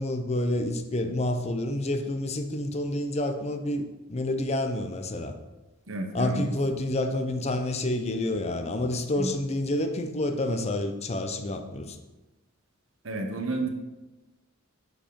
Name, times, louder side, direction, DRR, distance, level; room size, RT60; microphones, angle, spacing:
voice 1, 0.0-5.3 6.1-12.0, left 1 dB, 30° left, 7 dB, 0.6 m, -28 dB
voice 2, 5.9-6.5 9.1-9.3 13.0-13.7, right 2 dB, 70° right, 4 dB, 1.0 m, -31 dB
7.3 x 4.8 x 5.2 m, 1.1 s
head